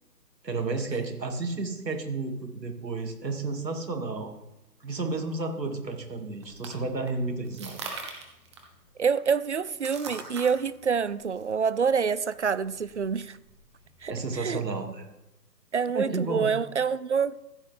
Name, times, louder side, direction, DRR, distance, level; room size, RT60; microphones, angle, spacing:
voice 1, 0.4-4.3 4.8-7.8 14.1-15.0 15.9-16.5, right 3 dB, 85° right, 2.4 m, -32 dB
sound 1, 6.1-14.4, right 4 dB, 15° right, 1.1 m, -44 dB
voice 2, 9.0-13.4 14.0-14.6 15.7-17.4, right 6 dB, 50° right, 0.4 m, -27 dB
15.0 x 7.8 x 3.4 m
figure-of-eight pair, 155°, 49 cm